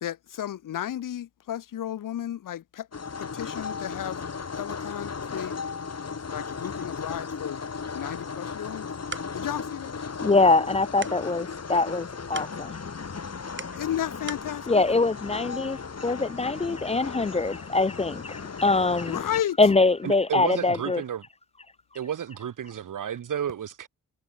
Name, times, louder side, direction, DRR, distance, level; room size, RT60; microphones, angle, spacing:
voice 1, 0.0-2.9 3.2-4.2 4.6-5.5 6.3-7.6 7.9-8.9 9.3-9.9 13.8-14.8 19.1-19.6, left 11 dB, 80° left, 0.8 m, -33 dB
sound 1, 2.9-19.4, left 5 dB, 55° left, 4.5 m, -36 dB
sound 2, 8.7-14.5, right 3 dB, 35° right, 7.0 m, -44 dB
voice 2, 10.2-12.8 14.7-19.2 19.6-21.0, left 3 dB, 20° left, 0.4 m, -23 dB
voice 3, 20.0-21.2 21.9-23.9, right 9 dB, 75° right, 1.4 m, -32 dB
cardioid pair, 65°, 32 cm